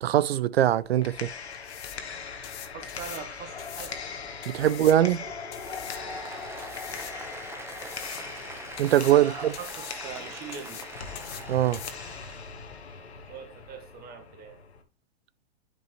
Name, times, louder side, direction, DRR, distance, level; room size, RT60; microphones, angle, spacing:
voice 1, 0.0-1.3 4.5-5.2 8.8-9.5 11.5-11.8, right 12 dB, 75° right, 0.5 m, -22 dB
sound 1, 0.6-14.0, left 10 dB, 30° left, 0.9 m, -46 dB
sound 2, 0.8-14.8, left 6 dB, 85° left, 1.4 m, -40 dB
voice 2, 2.7-4.0 4.6-5.1 9.2-10.8 13.3-14.6, right 7 dB, 30° right, 1.6 m, -42 dB
Applause, 5.5-12.5, right 3 dB, 10° right, 0.9 m, -43 dB
9.0 x 5.3 x 3.1 m
hypercardioid pair, 115°, 32 cm